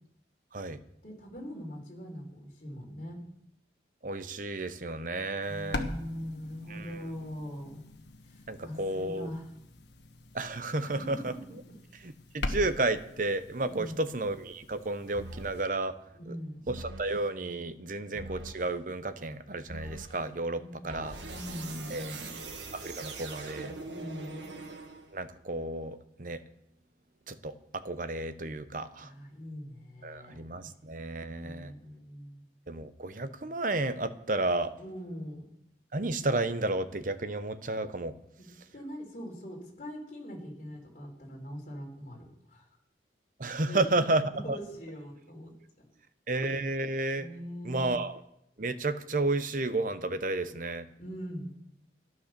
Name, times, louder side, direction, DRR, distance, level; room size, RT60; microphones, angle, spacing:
voice 1, 1.0-3.2 5.5-7.8 8.3-9.4 10.8-11.3 13.7-14.0 16.1-16.6 18.1-18.2 20.6-21.0 21.3-22.4 23.9-24.5 29.0-30.7 31.4-32.4 34.8-35.5 38.4-38.5 38.7-42.6 43.7-45.5 47.2-47.9 51.0-51.6, equal, 45° left, -1 dB, 4.3 m, -42 dB
voice 2, 4.0-5.9 6.7-7.1 8.5-9.3 10.3-11.3 12.0-15.9 16.3-16.4 16.7-21.2 21.9-23.7 25.1-26.4 27.3-29.1 30.0-31.7 32.7-34.7 35.9-38.1 43.4-44.6 46.3-47.3 47.6-48.2 48.6-50.9, right 2 dB, 45° right, 11 dB, 0.9 m, -32 dB
sound 1, 5.4-15.7, left 2 dB, 75° left, 1.5 m, -42 dB
sound 2, 15.1-15.7 16.7-17.2 18.2-18.7 19.7-20.2 20.9-25.3, right 2 dB, 85° right, 1.7 m, -42 dB
13.0 x 11.0 x 6.8 m, 0.78 s
head